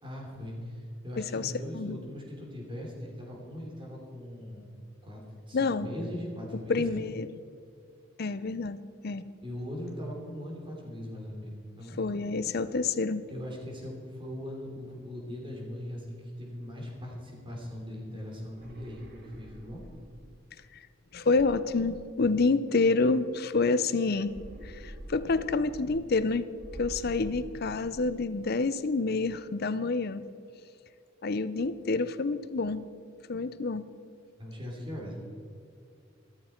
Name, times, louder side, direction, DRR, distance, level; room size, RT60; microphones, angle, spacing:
voice 1, 0.0-4.6 5.0-5.2 5.5-6.8 9.4-12.0 13.3-19.8 34.4-35.2, left 1 dB, 25° right, -2 dB, 3.2 m, -40 dB
voice 2, 1.2-2.0 5.5-5.9 6.7-7.4 8.2-8.8 9.0-9.2 12.0-13.3 21.1-24.3 24.6-26.5 26.8-30.2 31.2-32.8 33.3-33.9, left 3 dB, 50° left, 14 dB, 0.6 m, -28 dB
sound 1, 18.5-20.3 21.2-22.7 24.1-26.2 26.5-28.3, right 1 dB, 45° right, 1.5 m, -47 dB
14.5 x 13.5 x 4.4 m, 2.4 s
head